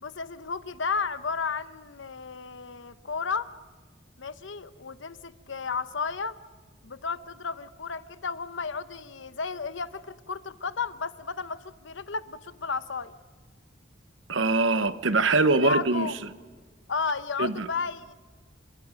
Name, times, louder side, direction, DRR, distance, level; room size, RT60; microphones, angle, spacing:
voice 1, 0.0-3.5 4.2-6.3 6.8-13.1 15.5-16.1 16.9-18.1, left 5 dB, 70° left, 0.9 m, -33 dB
voice 2, 14.3-16.1 17.4-17.7, right 3 dB, 75° right, 1.1 m, -23 dB
29.0 x 26.5 x 5.2 m
head